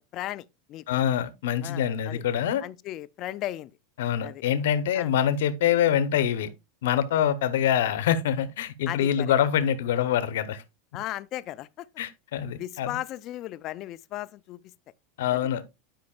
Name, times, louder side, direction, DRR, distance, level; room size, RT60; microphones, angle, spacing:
voice 1, 0.1-0.8 1.6-2.2 2.6-3.7 4.2-4.4 5.0-5.1 8.9-9.3 10.9-11.9 12.6-14.6 15.3-15.4, left 14 dB, 35° left, 0.3 m, -36 dB
voice 2, 0.9-2.6 4.0-6.5 6.8-10.6 12.0-13.0 15.2-15.6, left 9 dB, 80° left, 0.9 m, -25 dB
11.5 x 5.2 x 2.4 m
supercardioid pair, 165°, 0 cm